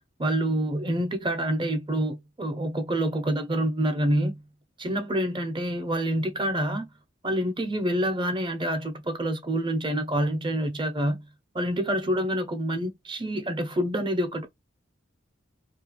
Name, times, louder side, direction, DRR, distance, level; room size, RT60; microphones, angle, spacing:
voice 1, 0.2-4.4 4.8-6.9 7.2-11.2 11.5-14.5, right 1 dB, 25° right, 0.5 m, -27 dB
2.3 x 2.2 x 2.9 m
head